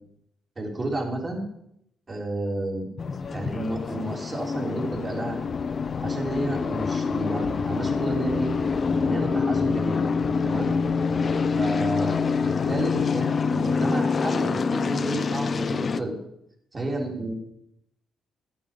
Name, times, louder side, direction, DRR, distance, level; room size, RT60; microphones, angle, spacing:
voice 1, 0.5-1.4 2.1-2.9 3.3-5.4 6.0-8.5 9.0-10.0 10.4-10.7 11.6-16.2 16.7-17.3, right 1 dB, 30° right, 0 dB, 3.4 m, -31 dB
sound 1, 3.0-16.0, left 5 dB, 40° left, 0.7 m, -26 dB
13.0 x 9.1 x 5.1 m, 0.76 s
cardioid pair, 90°, 0 cm